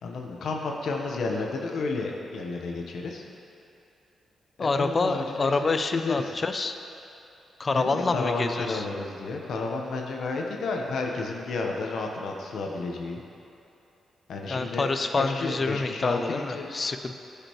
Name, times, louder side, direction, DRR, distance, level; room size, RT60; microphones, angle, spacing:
voice 1, 0.0-3.2 4.6-6.3 7.7-13.2 14.3-16.7, left 3 dB, 75° left, 1 dB, 0.9 m, -31 dB
voice 2, 4.6-6.8 7.6-8.9 14.5-17.1, left 3 dB, 35° left, 7 dB, 0.4 m, -27 dB
14.5 x 5.2 x 3.0 m, 2.8 s
cardioid pair, 85°, 0 cm